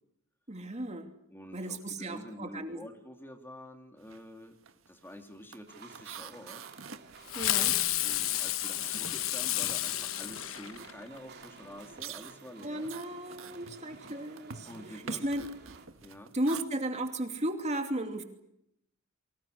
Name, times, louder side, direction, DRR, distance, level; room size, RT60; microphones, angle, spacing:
voice 1, 0.5-1.1 1.5-2.8 7.3-7.8 12.6-15.4 16.3-18.2, right 1 dB, 35° right, 5 dB, 2.8 m, -35 dB
voice 2, 1.3-4.6 4.9-6.6 8.0-12.9 14.7-15.5 16.0-16.3, equal, 10° left, 4 dB, 2.8 m, -48 dB
sound 1, 4.0-4.3 4.6-8.6 8.9-16.6, right 5 dB, 70° right, 1.7 m, -48 dB
sound 2, 5.7-15.9, right 3 dB, 55° right, 3.1 m, -53 dB
Fireworks, 7.3-11.2, left 14 dB, 80° left, 1.1 m, -31 dB
28.0 x 25.0 x 6.6 m, 0.75 s
head